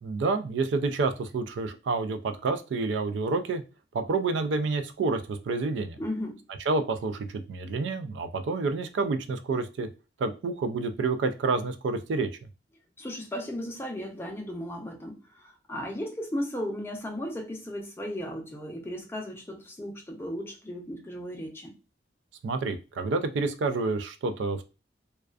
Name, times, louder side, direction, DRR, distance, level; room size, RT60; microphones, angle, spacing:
voice 1, 0.0-3.6 3.9-6.0 6.7-9.9 10.2-12.3 22.4-24.6, right 3 dB, 70° right, 0.3 m, -28 dB
voice 2, 6.0-6.4 13.0-21.7, equal, 15° left, 0.5 m, -35 dB
2.3 x 2.2 x 2.3 m
head